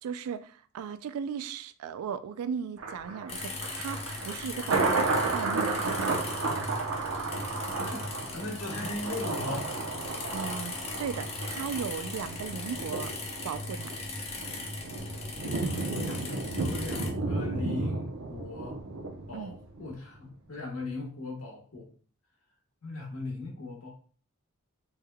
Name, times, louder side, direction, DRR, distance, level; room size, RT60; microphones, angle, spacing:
voice 1, 0.0-6.1 10.3-13.1 13.4-13.9 15.6-16.6 19.3-19.6, right 7 dB, 90° right, 0.3 m, -37 dB
Thunder, 2.8-19.9 20.3-20.4, right 3 dB, 75° right, 0.7 m, -33 dB
sound 1, 3.3-17.1, left 3 dB, 30° left, 0.6 m, -39 dB
voice 2, 8.3-9.7 15.6-18.8 19.3-21.9 22.8-23.9, left 2 dB, 85° left, 1.2 m, -38 dB
3.4 x 3.3 x 2.2 m
head